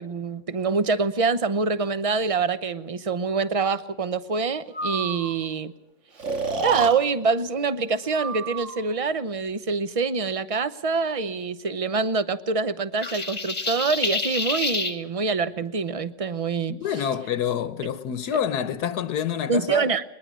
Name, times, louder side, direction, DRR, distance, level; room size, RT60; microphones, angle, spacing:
voice 1, 0.0-5.7 6.6-16.8 19.5-20.0, right 4 dB, 35° right, 0.6 m, -25 dB
Breathing, 4.7-5.4 6.2-7.0 8.1-8.9, right 4 dB, 50° right, 1.9 m, -30 dB
sound 1, 13.0-15.0, left 3 dB, 25° left, 1.5 m, -28 dB
voice 2, 16.7-19.8, left 8 dB, 80° left, 1.4 m, -27 dB
21.5 x 20.5 x 6.2 m
omnidirectional pair, 1.7 m